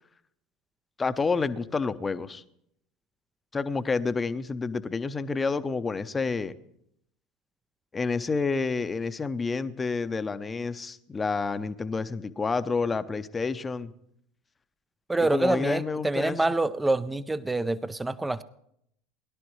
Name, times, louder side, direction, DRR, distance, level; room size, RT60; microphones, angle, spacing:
voice 1, 1.0-2.4 3.5-6.6 7.9-13.9 15.2-16.4, left 4 dB, 20° left, 12 dB, 0.8 m, -29 dB
voice 2, 15.1-18.4, right 2 dB, 10° right, 15 dB, 0.6 m, -26 dB
21.5 x 11.5 x 3.2 m, 0.72 s
hypercardioid pair, 80°, 0 cm